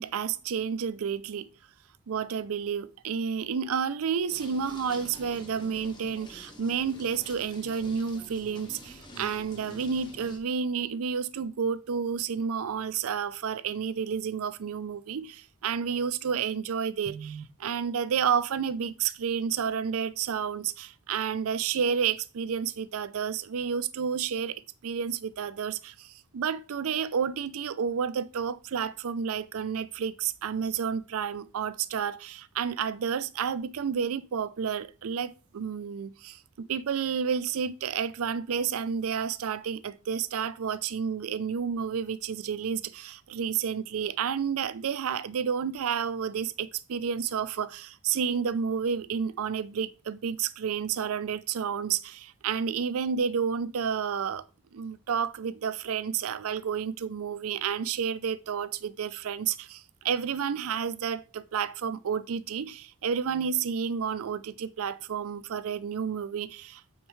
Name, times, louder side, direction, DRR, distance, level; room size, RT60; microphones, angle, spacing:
voice 1, 0.0-1.5 2.1-54.4 54.7-66.8, right 7 dB, 75° right, 0.4 m, -30 dB
sound 1, 4.3-10.4, equal, 20° left, 1.2 m, -47 dB
8.6 x 4.4 x 3.1 m
head